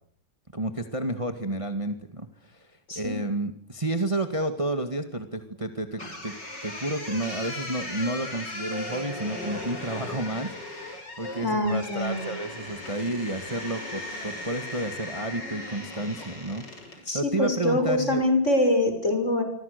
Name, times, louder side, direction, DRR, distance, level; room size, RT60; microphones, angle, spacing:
voice 1, 0.5-6.3 6.6-18.2, right 1 dB, 15° right, 7 dB, 1.9 m, -31 dB
sound 1, 6.0-17.0, left 1 dB, 65° left, 7.0 m, -37 dB
voice 2, 11.4-12.3 17.1-19.4, left 1 dB, 40° left, 6 dB, 6.4 m, -24 dB
27.5 x 25.0 x 6.8 m, 0.63 s
omnidirectional pair, 2.0 m